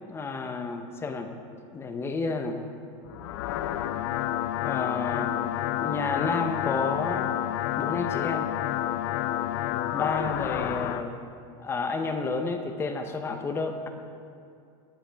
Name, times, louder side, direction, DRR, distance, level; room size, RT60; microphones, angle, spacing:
voice 1, 0.1-1.3 1.7-2.6 4.6-5.3 5.8-7.3 7.8-8.5 9.9-11.2 11.6-13.9, left 4 dB, 15° left, 6 dB, 0.6 m, -30 dB
sound 1, 3.1-11.0, left 13 dB, 65° left, 0.5 m, -29 dB
17.0 x 7.6 x 3.4 m, 2.4 s
supercardioid pair, 155°, 17 cm